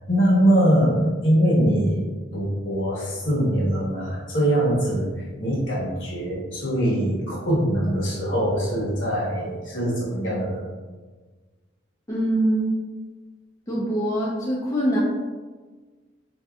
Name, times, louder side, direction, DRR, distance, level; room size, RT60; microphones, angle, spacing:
voice 1, 0.1-1.0 1.2-2.1 2.3-5.1 5.4-10.6, equal, 65° left, -6 dB, 1.3 m, -22 dB
voice 2, 12.1-12.8 13.7-15.0, right 1 dB, 15° left, -6 dB, 0.4 m, -23 dB
4.4 x 2.7 x 2.3 m, 1.4 s
head